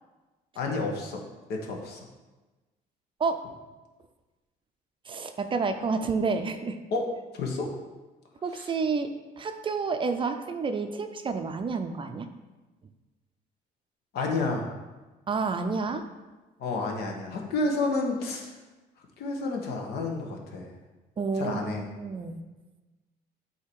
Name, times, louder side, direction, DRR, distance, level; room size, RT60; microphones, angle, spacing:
voice 1, 0.5-1.2 1.5-2.1 6.9-7.1 7.3-7.7 8.5-8.7 14.1-14.7 16.6-18.5 19.2-20.7 21.3-21.8, left 3 dB, 75° left, 1 dB, 1.2 m, -30 dB
voice 2, 5.1-6.8 8.4-9.1 9.4-12.3 15.3-16.0 21.2-22.4, right 4 dB, 30° right, 7 dB, 0.5 m, -29 dB
8.2 x 2.8 x 4.7 m, 1.2 s
cardioid pair, 110°, 17 cm